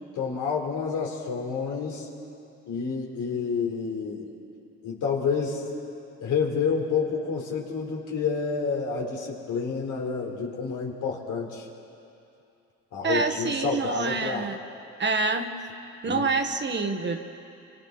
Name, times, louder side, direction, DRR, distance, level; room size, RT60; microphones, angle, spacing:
voice 1, 0.2-2.1 2.7-4.3 4.8-5.6 6.2-11.7 12.9-14.5 16.1-16.2, left 5 dB, 80° left, -2 dB, 3.9 m, -29 dB
voice 2, 13.0-14.6 15.0-15.5 16.0-17.2, right 4 dB, 35° right, 6 dB, 1.5 m, -26 dB
30.0 x 24.5 x 4.1 m, 2.7 s
cardioid pair, 90°, 30 cm